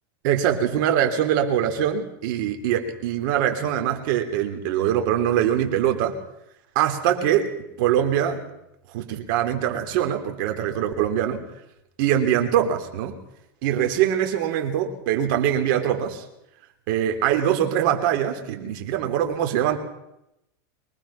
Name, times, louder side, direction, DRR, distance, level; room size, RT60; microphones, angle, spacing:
voice 1, 0.2-6.2 6.7-7.5 7.8-8.4 8.9-11.4 12.0-13.2 13.6-16.2 16.9-19.8, right 10 dB, 60° right, 5 dB, 3.3 m, -23 dB
24.0 x 19.0 x 5.8 m, 0.87 s
supercardioid pair, 140°, 12 cm